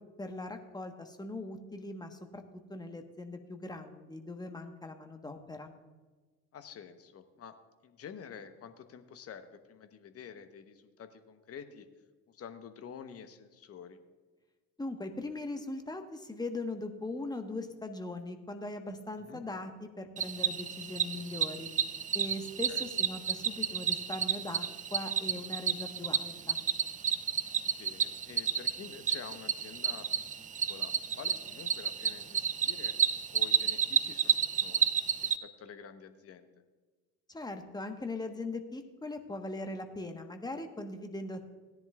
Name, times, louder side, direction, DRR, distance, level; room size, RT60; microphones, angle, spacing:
voice 1, 0.2-2.4 2.7-5.7 14.8-21.7 22.1-26.6 37.3-41.5, left 2 dB, 10° left, 5 dB, 1.3 m, -40 dB
voice 2, 6.5-7.6 7.8-11.9 12.3-14.0 19.2-19.4 22.7-22.8 27.8-32.9 33.3-36.6, left 7 dB, 35° left, 9 dB, 1.1 m, -49 dB
Cricket, 20.2-35.4, right 7 dB, 20° right, 0.4 m, -31 dB
17.5 x 10.5 x 2.4 m, 1.3 s
hypercardioid pair, 60°, 40 cm